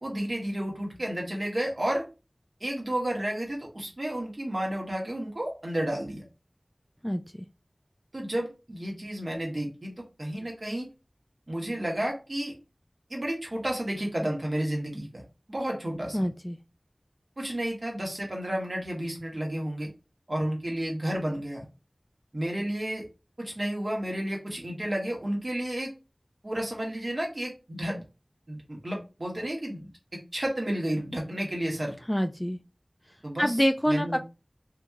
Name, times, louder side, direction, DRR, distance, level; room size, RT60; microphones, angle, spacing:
voice 1, 0.0-2.1 2.6-6.2 8.1-9.9 10.2-10.9 11.5-12.5 13.1-16.3 17.4-19.9 20.3-21.6 22.3-23.1 23.4-25.9 26.4-28.0 28.5-29.8 30.3-31.9 33.2-33.6 33.9-34.2, right 1 dB, 55° right, -1 dB, 1.4 m, -31 dB
voice 2, 7.0-7.5 16.1-16.6 32.1-32.6 33.4-34.2, equal, 10° left, 7 dB, 0.3 m, -26 dB
2.9 x 2.6 x 3.7 m, 0.29 s
wide cardioid pair, 50°, 0 cm